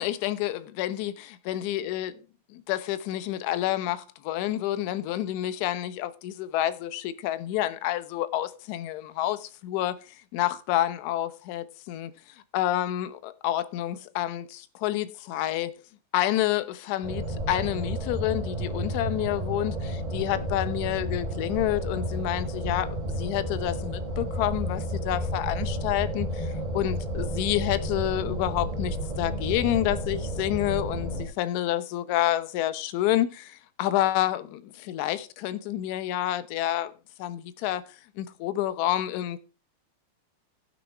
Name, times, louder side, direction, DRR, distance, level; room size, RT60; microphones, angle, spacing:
voice 1, 0.0-2.2 2.5-12.1 12.5-15.8 16.1-36.9 37.2-37.8 38.2-39.4, left 13 dB, 40° left, 0.8 m, -29 dB
sound 1, 17.0-31.2, equal, 15° right, 2.8 m, -31 dB
15.0 x 6.3 x 4.5 m
supercardioid pair, 170°, 0 cm